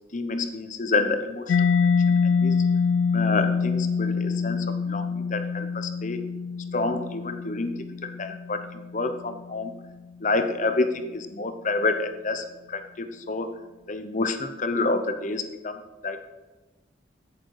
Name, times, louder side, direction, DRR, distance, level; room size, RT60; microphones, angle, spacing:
voice 1, 0.1-2.5 3.1-6.3 6.7-7.7 8.0-9.7 10.2-13.5 13.9-16.2, left 3 dB, 40° left, 8 dB, 0.9 m, -28 dB
Mallet percussion, 1.5-9.0, left 5 dB, 70° left, 0.3 m, -25 dB
15.5 x 7.1 x 4.8 m, 1.2 s
head